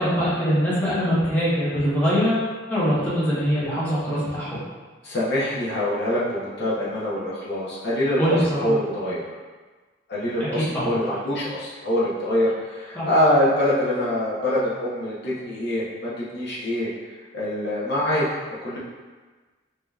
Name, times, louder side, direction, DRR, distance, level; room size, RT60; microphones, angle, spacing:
voice 1, 0.0-4.6 8.2-8.7 10.4-11.1 12.9-13.1, equal, 10° left, -10 dB, 1.1 m, -23 dB
voice 2, 5.0-9.2 10.1-16.9 17.3-18.2 18.6-18.8, left 1 dB, 60° left, -8 dB, 0.9 m, -24 dB
5.1 x 2.9 x 2.4 m, 1.3 s
head